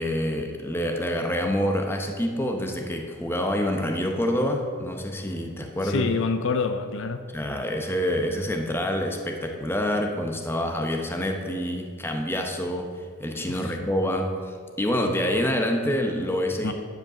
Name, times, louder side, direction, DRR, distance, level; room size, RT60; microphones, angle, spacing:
voice 1, 0.0-6.1 7.3-12.9 13.2-16.7, equal, 10° left, 3 dB, 0.8 m, -27 dB
voice 2, 5.8-7.2 13.4-13.9 16.6-16.7, left 4 dB, 60° left, 8 dB, 0.5 m, -27 dB
10.5 x 5.2 x 6.7 m, 2.1 s
head